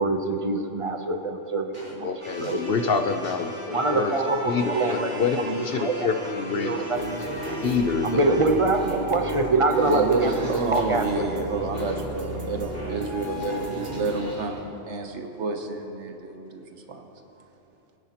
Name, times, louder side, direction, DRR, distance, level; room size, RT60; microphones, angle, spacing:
voice 1, 0.0-2.1 2.4-2.6 2.8-3.0 3.7-5.1 5.5-6.1 6.6-7.3 8.0-10.3 10.7-11.0, right 2 dB, 35° right, 5 dB, 0.6 m, -24 dB
sound 1, 1.7-1.9 2.2-2.6 3.2-3.5 3.7-4.0 4.7-5.0 5.2-5.4 5.7-5.8 6.2-6.4 6.7-6.9 7.3-7.6 8.2-8.4 8.7-11.1 11.7-12.0 12.7-14.6, equal, 10° left, 3.2 m, -41 dB
voice 2, 2.0-4.2 4.5-7.2 7.6-8.3 11.2-11.3, left 6 dB, 60° left, 7 dB, 0.7 m, -27 dB
sound 2, 2.2-10.3, right 1 dB, 15° right, 3.2 m, -38 dB
passion ringtone, 6.9-14.2, right 1 dB, 55° right, 1.7 m, -34 dB
voice 3, 9.8-17.1, right 3 dB, 70° right, 4 dB, 1.2 m, -30 dB
21.0 x 9.9 x 2.9 m, 2.9 s
omnidirectional pair, 1.3 m